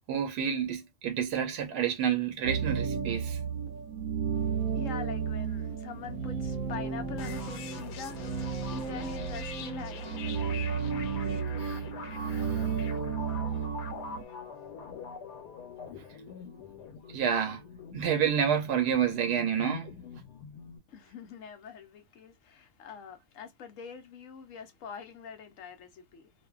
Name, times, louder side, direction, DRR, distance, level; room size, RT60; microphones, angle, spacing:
voice 1, 0.1-3.4 11.6-11.8 12.4-12.6 17.1-17.6 17.9-19.9, right 8 dB, 90° right, 1.2 m, -29 dB
sound 1, 2.4-14.2, right 6 dB, 70° right, 1.0 m, -33 dB
voice 2, 4.3-10.9 20.9-26.3, left 6 dB, 65° left, 0.9 m, -44 dB
sound 2, 7.2-20.8, left 5 dB, 85° left, 1.2 m, -44 dB
2.5 x 2.5 x 2.3 m
omnidirectional pair, 1.7 m